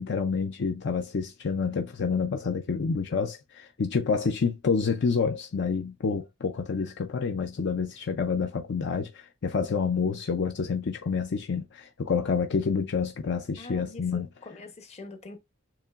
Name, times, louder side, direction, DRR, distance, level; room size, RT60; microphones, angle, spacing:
voice 1, 0.0-14.3, left 5 dB, 60° left, 0.5 m, -28 dB
voice 2, 13.6-15.4, left 2 dB, 35° left, 0.9 m, -44 dB
7.0 x 2.9 x 2.4 m
head